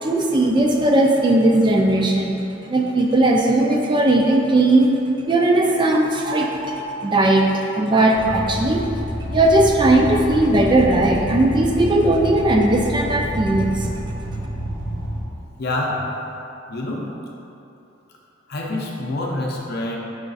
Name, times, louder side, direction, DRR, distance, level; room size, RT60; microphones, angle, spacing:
voice 1, 0.0-2.4 2.7-4.9 5.3-6.8 7.0-8.8 9.3-13.9, right 2 dB, 25° right, 0 dB, 0.3 m, -17 dB
sound 1, 8.1-15.2, equal, 80° right, 1.2 m, -28 dB
voice 2, 15.6-16.2 16.7-17.1 18.5-20.0, left 1 dB, 55° left, -1 dB, 0.6 m, -26 dB
5.5 x 2.4 x 3.9 m, 2.8 s
head